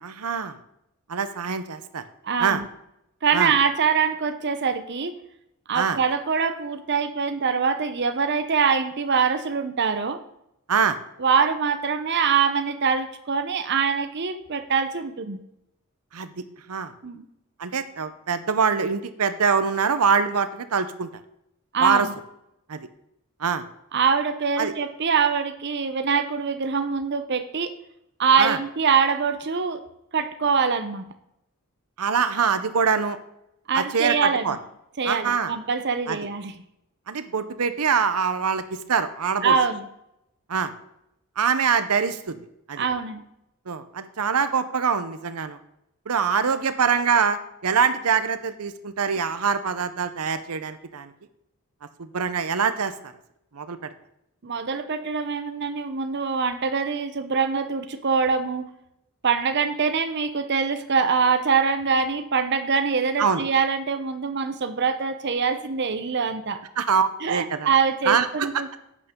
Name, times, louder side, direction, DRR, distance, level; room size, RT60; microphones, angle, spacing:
voice 1, 0.0-0.6 1.1-2.0 2.4-2.6 3.3-3.5 5.7-6.0 10.7-11.0 16.1-16.9 17.6-21.1 21.8-22.1 22.7-22.9 23.4-23.7 24.6-24.7 28.4-28.6 32.0-33.2 33.7-34.6 35.0-35.5 36.1-36.2 37.1-39.5 40.5-40.7 41.4-42.4 42.7-42.9 43.7-45.6 46.1-51.1 52.0-53.1 53.5-53.9 63.2-63.4 66.8-67.7 68.0-68.5, right 6 dB, 85° right, 11 dB, 0.7 m, -24 dB
voice 2, 2.2-2.6 3.2-5.1 5.7-10.2 11.2-15.4 17.0-17.3 21.7-22.1 23.9-27.7 28.2-29.8 30.1-31.1 33.7-34.5 35.0-36.6 39.4-39.9 42.8-43.2 54.4-58.7 59.2-66.6 67.2-68.7, right 5 dB, 50° right, 9 dB, 0.7 m, -24 dB
10.5 x 8.5 x 3.7 m, 0.81 s
head